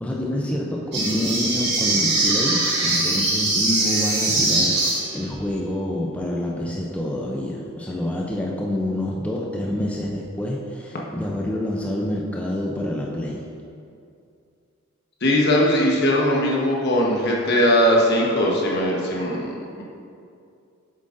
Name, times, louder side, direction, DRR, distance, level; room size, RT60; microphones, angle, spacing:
voice 1, 0.0-13.4, left 1 dB, 5° left, -3 dB, 0.4 m, -27 dB
sound 1, 0.9-5.3, right 2 dB, 55° right, 1.7 m, -22 dB
voice 2, 15.2-19.8, equal, 55° left, -3 dB, 1.2 m, -20 dB
7.6 x 7.4 x 2.6 m, 2.4 s
head